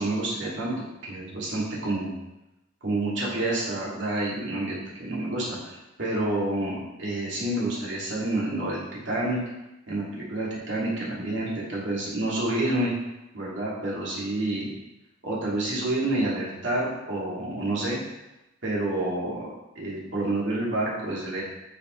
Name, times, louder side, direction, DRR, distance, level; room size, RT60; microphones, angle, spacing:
voice 1, 0.0-2.1 2.8-9.4 9.9-12.9 13.3-14.7 15.2-18.0 18.6-19.5 19.8-21.4, right 1 dB, 65° right, -5 dB, 2.2 m, -28 dB
8.0 x 5.1 x 3.1 m, 0.95 s
head